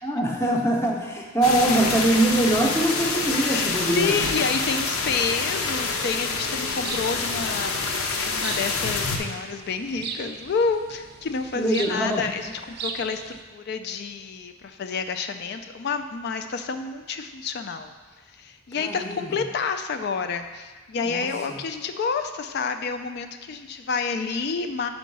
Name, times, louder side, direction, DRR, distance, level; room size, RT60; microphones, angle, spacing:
voice 1, 0.0-4.2 11.6-12.2 18.8-19.3 21.0-21.6, right 1 dB, 10° left, 0 dB, 0.6 m, -23 dB
sound 1, 1.4-9.2, left 4 dB, 85° left, 0.7 m, -27 dB
voice 2, 3.5-17.9 18.3-24.9, left 5 dB, 50° left, 8 dB, 0.3 m, -29 dB
sound 2, 5.6-13.4, right 4 dB, 50° right, 0.5 m, -39 dB
5.1 x 4.6 x 5.3 m, 1.3 s
head